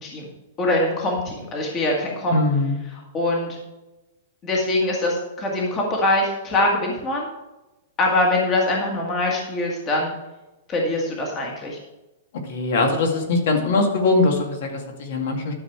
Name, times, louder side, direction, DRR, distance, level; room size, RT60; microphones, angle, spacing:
voice 1, 0.6-2.4 3.1-3.6 4.4-7.3 8.0-10.1 10.7-11.8, left 1 dB, 20° left, -1 dB, 1.7 m, -23 dB
voice 2, 2.3-2.8 12.4-15.5, left 3 dB, 55° left, 2 dB, 2.2 m, -21 dB
12.0 x 6.7 x 4.7 m, 1.0 s
supercardioid pair, 175°, 0 cm